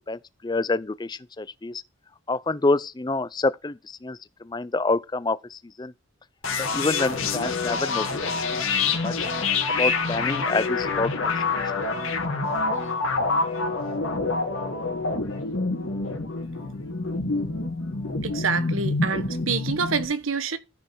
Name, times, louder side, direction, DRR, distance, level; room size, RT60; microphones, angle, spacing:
voice 1, 0.1-1.8 2.3-5.9 6.6-8.1 8.4-8.6 9.0-9.1 9.8-11.3, left 3 dB, 20° left, 0.4 m, -27 dB
sound 1, 6.4-20.0, left 4 dB, 90° left, 2.3 m, -27 dB
voice 2, 18.2-20.6, right 5 dB, 85° right, 1.0 m, -27 dB
13.0 x 5.4 x 4.6 m
head